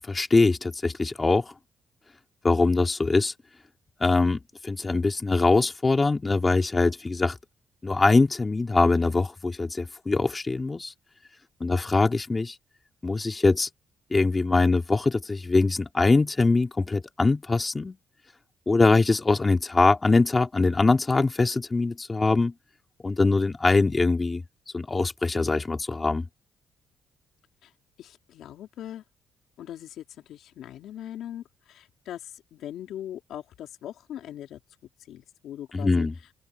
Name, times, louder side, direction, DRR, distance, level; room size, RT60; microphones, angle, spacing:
voice 1, 0.1-1.5 2.4-3.3 4.0-7.4 7.8-10.9 11.6-12.5 13.0-13.7 14.1-18.0 18.7-22.5 23.0-24.4 24.7-26.3 35.7-36.1, left 3 dB, 25° left, 2.9 m, -23 dB
voice 2, 28.0-29.0 29.6-34.6 35.1-36.1, left 11 dB, 80° left, 3.6 m, -40 dB
open air
cardioid pair, 90°, 0 cm